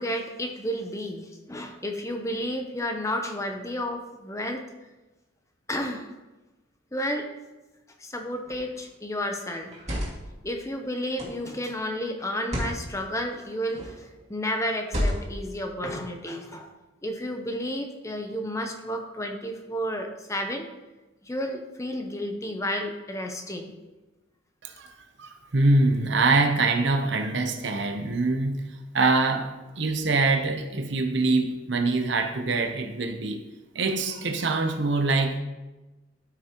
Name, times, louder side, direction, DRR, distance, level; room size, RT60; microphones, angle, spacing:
voice 1, 0.0-4.6 5.7-6.1 6.9-7.3 8.0-9.7 10.4-16.7 17.0-20.7 21.2-23.7, equal, 15° left, 4 dB, 0.7 m, -31 dB
sound 1, 8.5-8.8 9.6-10.3 11.2-11.5 12.4-12.8 13.7-14.0 14.8-15.5, equal, 35° right, 2.2 m, -30 dB
voice 2, 24.6-24.9 25.2-29.5 29.8-33.4 33.7-35.4, right 3 dB, 60° right, 5 dB, 0.8 m, -24 dB
12.5 x 6.0 x 3.0 m, 1.1 s
head